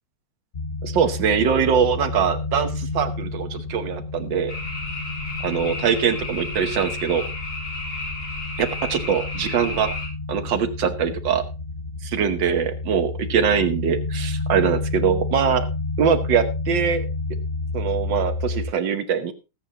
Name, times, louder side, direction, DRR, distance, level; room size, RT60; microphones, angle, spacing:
sound 1, 0.5-18.7, left 3 dB, 40° left, 1.5 m, -30 dB
voice 1, 0.8-4.5 5.4-7.3 8.6-9.9 10.3-11.4 12.0-15.7 16.0-17.1 17.7-19.3, right 7 dB, 80° right, 8 dB, 1.8 m, -22 dB
sound 2, 4.5-10.1, left 2 dB, 55° left, 4.1 m, -33 dB
19.5 x 8.2 x 2.9 m, 0.29 s
omnidirectional pair, 2.0 m